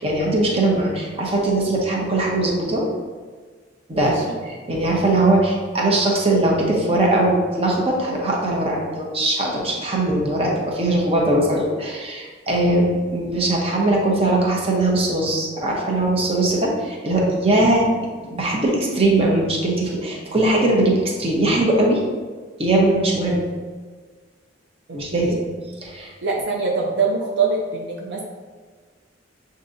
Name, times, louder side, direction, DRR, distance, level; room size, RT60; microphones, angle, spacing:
voice 1, 0.0-2.8 3.9-4.2 4.4-17.9 18.3-22.0 22.6-23.4 24.9-25.3 25.8-26.1, right 2 dB, 30° right, -2 dB, 0.8 m, -20 dB
voice 2, 3.9-4.4 17.8-18.0 24.9-25.4 26.2-28.2, right 4 dB, 65° right, -1 dB, 0.5 m, -24 dB
6.6 x 2.7 x 2.6 m, 1.5 s
head